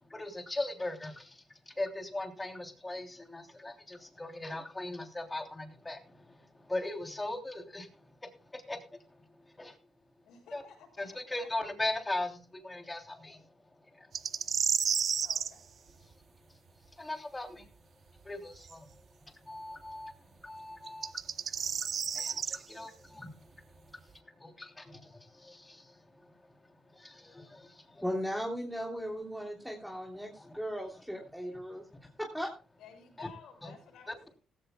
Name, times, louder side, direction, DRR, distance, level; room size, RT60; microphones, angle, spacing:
voice 1, 0.0-9.8 10.5-10.6 11.0-13.5 13.8-14.1 16.0-16.1 16.9-17.7 18.2-18.9 19.2-26.6 26.8-28.0 30.3-30.5 33.2-33.3 33.6-33.7, left 2 dB, 15° left, 4 dB, 3.3 m, -40 dB
voice 2, 10.2-11.5 15.2-15.6 32.8-34.4, left 7 dB, 80° left, 2 dB, 7.3 m, -54 dB
sound 1, 14.1-15.5 18.7-18.8 20.9-22.6, right 7 dB, 55° right, 0.7 m, -31 dB
voice 3, 28.0-31.8 32.2-32.5, equal, 5° right, 0 dB, 3.3 m, -37 dB
16.5 x 16.0 x 2.3 m, 0.33 s
cardioid pair, 90°, 0 cm